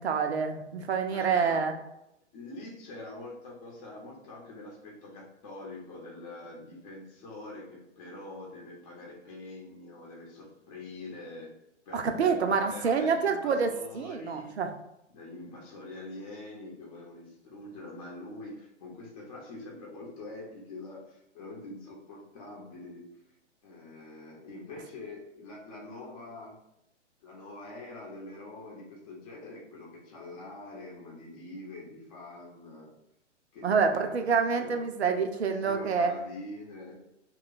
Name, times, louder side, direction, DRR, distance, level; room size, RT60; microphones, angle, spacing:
voice 1, 0.0-1.7 11.9-14.7 33.6-36.1, right 5 dB, 60° right, 6 dB, 0.6 m, -27 dB
voice 2, 1.1-1.6 2.3-11.5 11.9-14.6 15.1-23.0 23.6-26.6 27.2-32.9 33.5-33.7 33.9-34.8 35.6-36.9, left 2 dB, 30° left, -2 dB, 0.8 m, -45 dB
2.9 x 2.3 x 3.9 m, 0.84 s
figure-of-eight pair, 120°, 36 cm